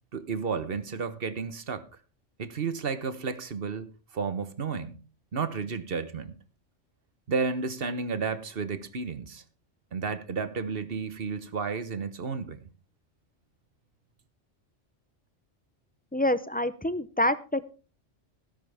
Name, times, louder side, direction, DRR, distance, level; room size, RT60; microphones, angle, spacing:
voice 1, 0.1-1.8 2.4-5.0 5.3-6.3 7.3-9.4 9.9-12.6, right 5 dB, 50° right, 1.3 m, -32 dB
voice 2, 16.1-17.6, left 1 dB, 10° left, 0.4 m, -27 dB
17.0 x 10.5 x 3.5 m
omnidirectional pair, 1.2 m